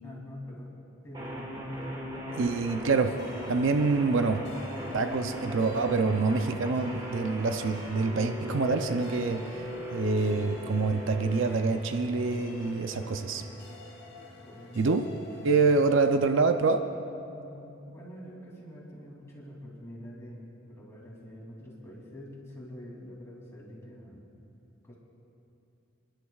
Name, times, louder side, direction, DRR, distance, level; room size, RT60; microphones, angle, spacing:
voice 1, 0.0-0.8 1.0-1.5 14.4-14.9 17.3-24.3 24.8-25.0, equal, 15° left, -5 dB, 2.8 m, -45 dB
sound 1, 1.1-14.1, equal, 20° right, 1.9 m, -39 dB
voice 2, 2.4-3.2 3.5-4.4 4.9-9.6 9.9-13.4 14.8-15.1 15.4-16.8, right 4 dB, 65° right, 7 dB, 0.5 m, -26 dB
sound 2, 3.2-15.9, left 1 dB, 50° left, 1.6 m, -51 dB
29.5 x 11.5 x 2.4 m, 2.7 s
head